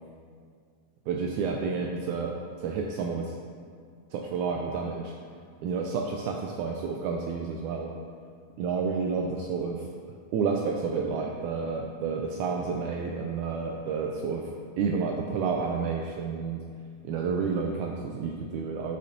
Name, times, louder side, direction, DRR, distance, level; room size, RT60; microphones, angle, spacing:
voice 1, 1.1-2.3 2.6-3.3 4.1-5.1 5.6-7.9 8.6-9.9 10.3-14.5 14.8-16.6 17.0-19.0, right 5 dB, 85° right, 1 dB, 1.7 m, -30 dB
9.9 x 6.3 x 2.7 m, 2.2 s
omnidirectional pair, 3.9 m